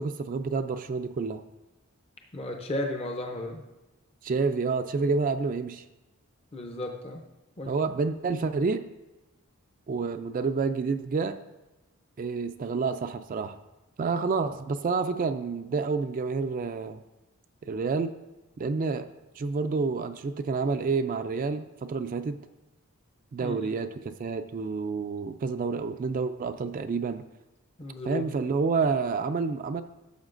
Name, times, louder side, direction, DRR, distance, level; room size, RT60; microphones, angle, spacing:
voice 1, 0.0-1.4 4.2-5.8 7.7-8.8 9.9-11.4 12.2-13.6 14.0-17.0 17.6-18.1 18.6-19.1 19.4-22.4 23.3-27.3 28.0-29.8, right 4 dB, 40° right, 9 dB, 0.3 m, -29 dB
voice 2, 2.3-3.6 6.5-7.2 7.6-7.7 23.4-23.7 27.8-28.3, left 1 dB, 25° left, 2 dB, 0.6 m, -34 dB
12.5 x 7.2 x 2.5 m, 1.0 s
head